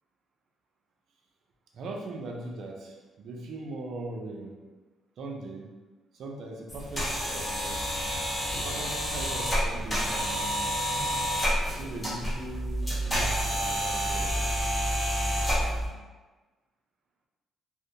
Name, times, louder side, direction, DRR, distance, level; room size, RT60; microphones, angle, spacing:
voice 1, 1.7-4.6 5.2-5.7 6.1-7.9 8.6-10.6 11.7-14.4, right 2 dB, 70° right, 1 dB, 0.4 m, -40 dB
sound 1, 6.7-15.9, equal, 15° left, 1.1 m, -29 dB
2.6 x 2.0 x 2.6 m, 1.3 s
cardioid pair, 90°, 0 cm